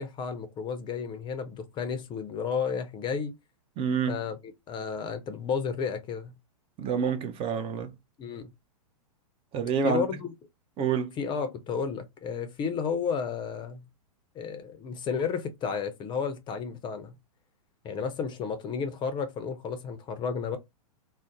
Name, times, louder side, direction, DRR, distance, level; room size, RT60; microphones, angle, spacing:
voice 1, 0.0-3.3 4.1-4.4 4.7-6.3 8.2-8.5 9.8-10.3 11.2-13.8 14.4-17.2 17.8-20.6, left 6 dB, 25° left, 0.5 m, -32 dB
voice 2, 3.8-4.2 6.8-7.9 9.5-10.0 10.8-11.1, right 6 dB, 30° right, 0.5 m, -28 dB
2.5 x 2.0 x 3.7 m
hypercardioid pair, 115°, 20 cm